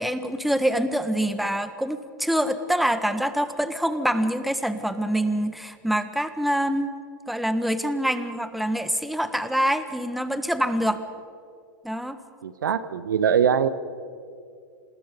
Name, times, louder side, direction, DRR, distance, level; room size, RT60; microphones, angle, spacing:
voice 1, 0.0-6.9 7.3-11.0 11.8-12.2, equal, ahead, 11 dB, 1.3 m, -25 dB
voice 2, 12.4-13.7, right 8 dB, 75° right, 14 dB, 1.0 m, -22 dB
27.0 x 20.0 x 5.4 m, 2.3 s
hypercardioid pair, 100°, 11 cm